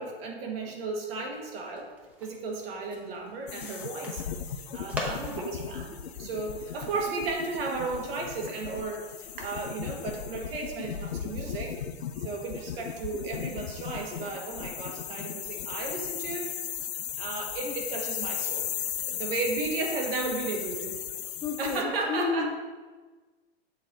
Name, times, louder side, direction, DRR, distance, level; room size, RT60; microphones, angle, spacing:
voice 1, 0.0-1.9 2.2-11.7 12.2-16.5 17.2-18.7 19.0-21.0 21.6-22.5, right 3 dB, 65° right, 1 dB, 1.5 m, -34 dB
sound 1, 1.4-6.9, left 1 dB, 5° right, 0.9 m, -42 dB
sound 2, 3.5-21.8, left 9 dB, 80° left, 0.6 m, -36 dB
voice 2, 21.4-22.5, left 4 dB, 15° left, 2 dB, 0.4 m, -31 dB
8.0 x 3.2 x 3.9 m, 1.3 s
hypercardioid pair, 110°, 32 cm